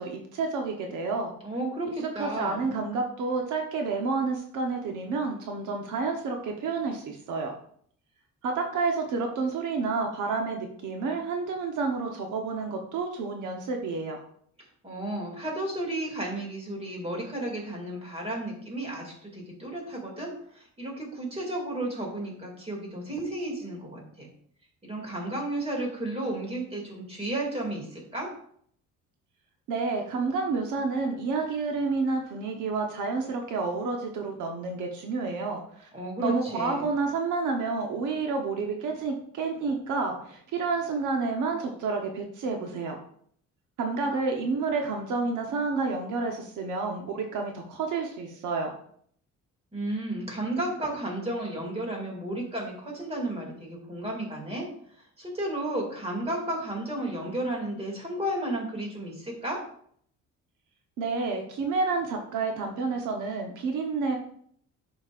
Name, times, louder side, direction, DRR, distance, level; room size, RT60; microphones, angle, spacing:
voice 1, 0.0-1.3 2.2-7.5 8.4-14.2 29.7-35.9 36.2-43.0 43.8-48.7 61.0-64.2, right 4 dB, 75° right, 3 dB, 1.1 m, -29 dB
voice 2, 1.4-2.7 14.8-24.3 24.8-28.3 35.9-36.9 49.7-54.7 55.2-59.6, right 1 dB, 20° right, 0 dB, 2.5 m, -33 dB
11.0 x 5.5 x 2.5 m, 0.63 s
cardioid pair, 130°, 31 cm